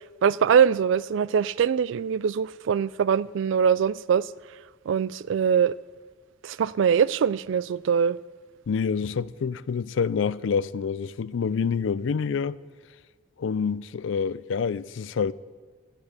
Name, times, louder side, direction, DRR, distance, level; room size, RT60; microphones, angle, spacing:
voice 1, 0.2-4.3 4.9-5.8 6.4-8.2, right 7 dB, 70° right, 0.3 m, -22 dB
voice 2, 8.7-12.6 13.4-15.3, left 6 dB, 70° left, 0.4 m, -27 dB
10.5 x 8.7 x 8.0 m
head